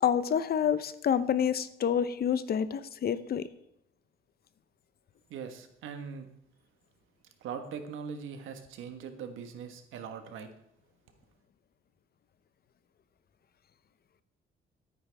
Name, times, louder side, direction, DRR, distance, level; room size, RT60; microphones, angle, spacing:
voice 1, 0.0-3.5, left 8 dB, 50° left, 14 dB, 0.7 m, -28 dB
voice 2, 5.3-6.3 7.4-10.5, right 6 dB, 85° right, 7 dB, 1.4 m, -41 dB
12.5 x 9.2 x 3.5 m, 0.77 s
cardioid pair, 90°, 20 cm